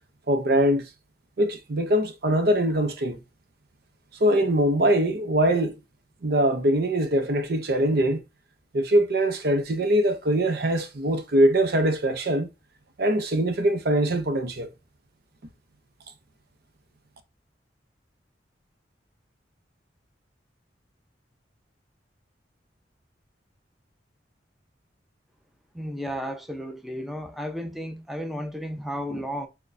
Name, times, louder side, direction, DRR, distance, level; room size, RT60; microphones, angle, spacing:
voice 1, 0.3-0.9 1.4-3.2 4.2-5.8 6.2-8.2 8.7-12.5 13.0-14.7, right 1 dB, 60° right, 0.6 m, -22 dB
voice 2, 25.7-29.5, equal, ahead, 0.5 m, -33 dB
6.2 x 2.2 x 2.5 m
head